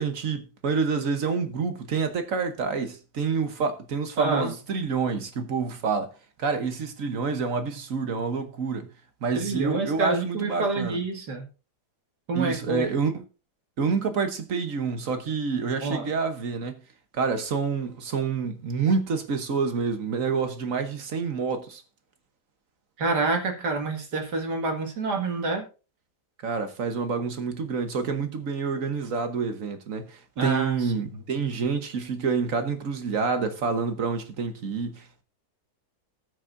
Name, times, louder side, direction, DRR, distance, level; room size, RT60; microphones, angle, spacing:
voice 1, 0.0-6.1 6.4-8.9 9.2-11.0 12.3-13.2 13.8-16.8 17.1-21.8 26.4-35.2, right 5 dB, 55° right, 1.4 m, -28 dB
voice 2, 4.2-4.5 9.4-11.5 12.3-12.9 15.8-16.1 23.0-25.7 30.4-30.7, right 3 dB, 85° right, 2.6 m, -27 dB
19.0 x 6.4 x 2.6 m
omnidirectional pair, 1.7 m